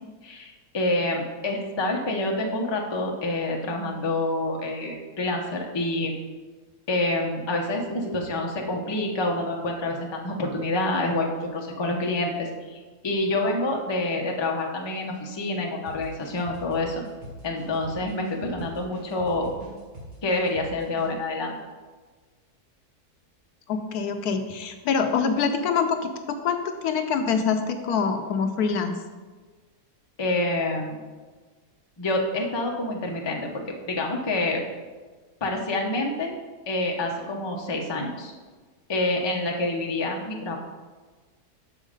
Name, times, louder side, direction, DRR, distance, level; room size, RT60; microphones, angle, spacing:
voice 1, 0.2-6.1 6.9-17.0 17.4-19.5 20.2-21.6 30.2-31.0 32.0-34.6 35.4-36.4 36.7-38.3 38.9-40.6, left 2 dB, 25° left, 1 dB, 0.7 m, -27 dB
sound 1, 15.9-21.1, right 1 dB, 65° right, 2.4 m, -42 dB
voice 2, 23.7-29.0, left 6 dB, 80° left, 7 dB, 1.2 m, -25 dB
6.5 x 6.2 x 5.0 m, 1.4 s
omnidirectional pair, 1.7 m